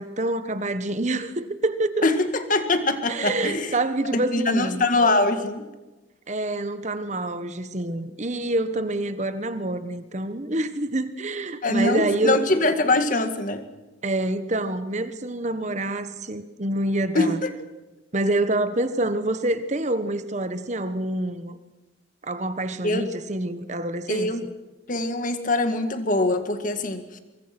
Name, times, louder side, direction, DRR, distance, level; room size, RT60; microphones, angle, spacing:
voice 1, 0.0-2.1 3.1-4.8 6.3-12.4 14.0-17.4 18.1-21.6 22.2-24.3, right 2 dB, 35° right, 11 dB, 1.4 m, -27 dB
voice 2, 2.0-3.7 4.1-5.7 11.6-13.7 17.1-17.5 22.8-23.1 24.1-24.4 24.9-27.2, left 2 dB, 40° left, 8 dB, 2.0 m, -23 dB
24.0 x 23.5 x 6.1 m, 1.1 s
head